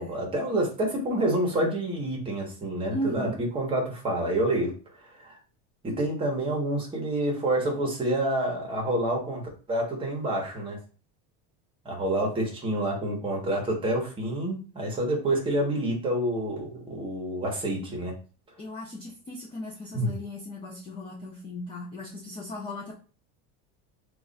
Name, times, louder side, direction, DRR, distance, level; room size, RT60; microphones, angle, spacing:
voice 1, 0.0-4.7 5.0-5.4 5.8-10.8 11.8-18.1 19.9-20.1, right 1 dB, 15° right, 0 dB, 0.9 m, -28 dB
voice 2, 2.9-3.4 18.6-22.9, equal, 15° left, -2 dB, 0.4 m, -36 dB
3.1 x 2.4 x 3.8 m, 0.37 s
cardioid pair, 170°, 33 cm